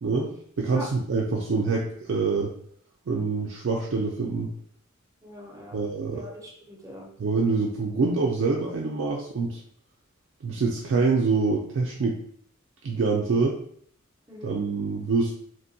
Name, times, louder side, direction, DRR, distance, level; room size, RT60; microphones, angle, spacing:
voice 1, 0.0-2.5 3.1-4.5 5.7-6.2 7.2-9.6 10.4-12.2 12.8-13.6 14.4-15.3, right 4 dB, 60° right, -1 dB, 0.4 m, -25 dB
voice 2, 5.2-5.8 6.1-7.1 14.3-14.6, left 2 dB, 15° right, -2 dB, 0.6 m, -42 dB
2.8 x 2.1 x 2.7 m, 0.62 s
head